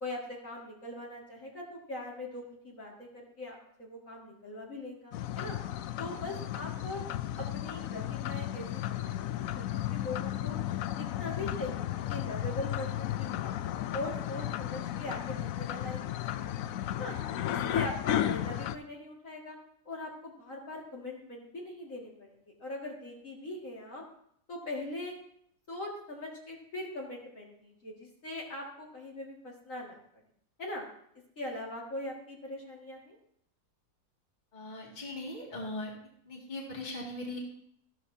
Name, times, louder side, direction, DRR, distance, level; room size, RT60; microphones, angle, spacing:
voice 1, 0.0-5.6 6.0-7.0 7.4-10.6 10.9-13.5 13.9-17.1 17.5-19.6 19.9-24.0 24.5-25.1 25.7-30.0 30.6-30.9 31.4-33.2, left 2 dB, 45° left, -3 dB, 2.5 m, -41 dB
sound 1, 5.1-18.8, left 12 dB, 75° left, 0.7 m, -34 dB
voice 2, 34.5-35.9 36.3-37.4, left 1 dB, 25° left, -3 dB, 2.3 m, -39 dB
14.5 x 12.5 x 2.8 m, 0.69 s
omnidirectional pair, 2.0 m